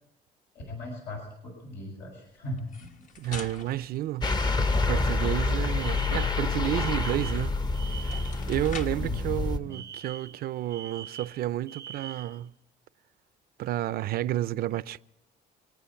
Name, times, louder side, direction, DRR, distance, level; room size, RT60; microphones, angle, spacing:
voice 1, 0.7-2.7 9.0-9.8, left 1 dB, 85° left, 6.5 m, -38 dB
sound 1, 2.6-5.0 7.4-7.5 7.9-9.1, left 5 dB, 50° left, 1.2 m, -44 dB
voice 2, 3.2-7.6 7.9-12.5 13.6-15.0, right 14 dB, 65° right, 0.6 m, -31 dB
sound 2, 4.2-9.6, left 3 dB, 25° left, 0.9 m, -27 dB
Alarm, 5.8-8.5 9.7-12.4, right 8 dB, 20° right, 0.6 m, -44 dB
26.5 x 9.2 x 5.8 m
cardioid pair, 110°, 17 cm